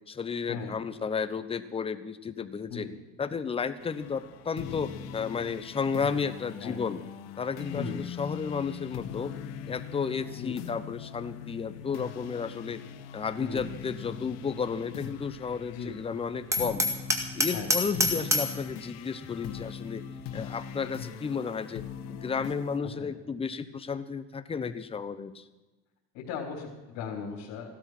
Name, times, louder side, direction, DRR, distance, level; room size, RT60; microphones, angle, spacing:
voice 1, 0.1-2.9 3.2-7.0 7.4-9.3 9.7-12.8 13.1-16.9 17.3-20.1 20.3-25.4, left 5 dB, 20° left, 11 dB, 1.0 m, -33 dB
sound 1, 3.8-22.8, left 8 dB, 85° left, 1.5 m, -41 dB
Hammer, 16.5-18.6, equal, 10° right, 1.9 m, -27 dB
voice 2, 26.1-27.7, left 6 dB, 65° left, -4 dB, 4.1 m, -37 dB
16.0 x 13.0 x 6.0 m, 1.1 s
cardioid pair, 135°, 30 cm